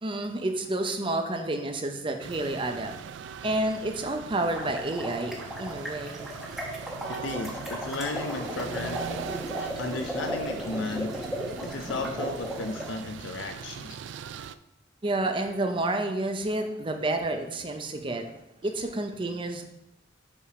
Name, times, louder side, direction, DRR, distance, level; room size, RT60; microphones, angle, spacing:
voice 1, 0.0-2.9 3.4-6.3 15.0-18.3 18.6-19.6, right 2 dB, 25° right, 5 dB, 0.6 m, -29 dB
sound 1, 2.2-14.6, right 7 dB, 70° right, 0.3 m, -40 dB
sound 2, 4.6-12.9, equal, ahead, 1.0 m, -36 dB
voice 2, 7.1-11.1 11.6-14.0, left 3 dB, 80° left, 5 dB, 0.5 m, -35 dB
5.5 x 4.9 x 4.9 m, 0.87 s
head